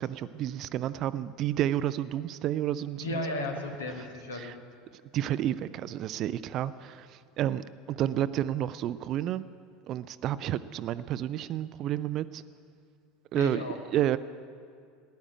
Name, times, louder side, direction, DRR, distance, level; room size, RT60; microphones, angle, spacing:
voice 1, 0.0-3.2 4.3-4.5 5.1-9.4 9.9-12.4 13.3-13.6 13.9-14.2, right 12 dB, 40° right, 14 dB, 0.4 m, -30 dB
voice 2, 3.0-4.5 13.3-13.8, left 2 dB, 70° left, 4 dB, 1.7 m, -34 dB
15.0 x 10.5 x 8.6 m, 2.2 s
figure-of-eight pair, 70°, 0 cm